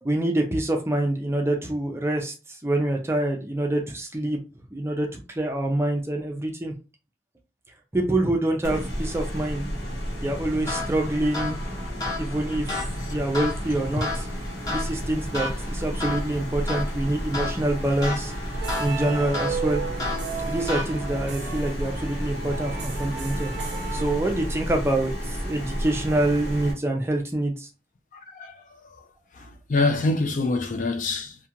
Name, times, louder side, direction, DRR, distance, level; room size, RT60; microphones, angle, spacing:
voice 1, 0.0-4.4 4.7-6.7 7.9-9.7 10.2-11.6 12.2-12.7 13.0-14.3 14.7-18.3 18.8-19.8 20.4-27.7, right 1 dB, 15° right, 0.4 m, -26 dB
sound 1, 8.6-26.7, equal, 80° left, 1.1 m, -32 dB
sound 2, 10.6-21.3, left 3 dB, 20° left, 0.8 m, -34 dB
sound 3, 18.5-24.8, right 6 dB, 70° right, 0.5 m, -35 dB
voice 2, 28.1-28.6 29.3-31.4, left 3 dB, 45° left, 0.4 m, -26 dB
2.4 x 2.2 x 2.8 m
head